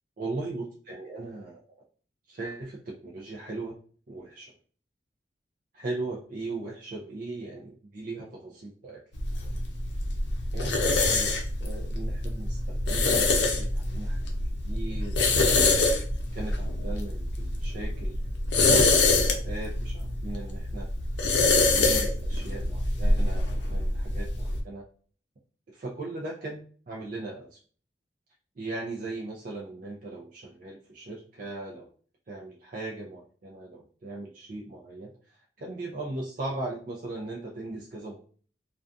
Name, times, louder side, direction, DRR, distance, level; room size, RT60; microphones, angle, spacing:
voice 1, 0.2-1.6 2.3-3.8 4.1-4.5 5.7-9.0 10.5-14.2 14.6-15.6 16.3-18.2 18.6-20.9 21.5-24.8 25.7-27.6 28.6-31.9 32.3-38.2, right 2 dB, 50° right, -3 dB, 0.5 m, -38 dB
sound 1, 9.1-24.6, left 3 dB, 80° left, 0.5 m, -25 dB
2.4 x 2.2 x 2.5 m, 0.43 s
head